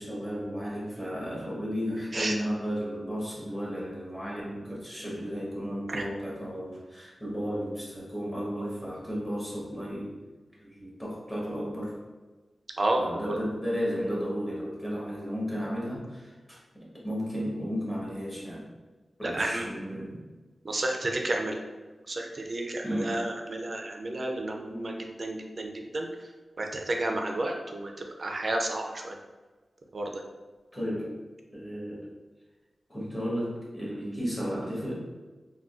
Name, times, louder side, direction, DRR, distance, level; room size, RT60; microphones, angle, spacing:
voice 1, 0.0-10.2 10.6-12.0 13.0-18.7 19.2-20.2 22.8-23.3 30.7-31.2 31.5-32.1 32.9-34.9, equal, 15° left, -6 dB, 1.2 m, -34 dB
voice 2, 12.8-13.4 19.2-19.6 20.6-21.6 22.1-26.1 26.6-27.9 28.2-29.2 29.9-30.1, right 1 dB, 50° right, 2 dB, 0.4 m, -31 dB
3.6 x 2.2 x 2.4 m, 1.3 s
wide cardioid pair, 70°, 0 cm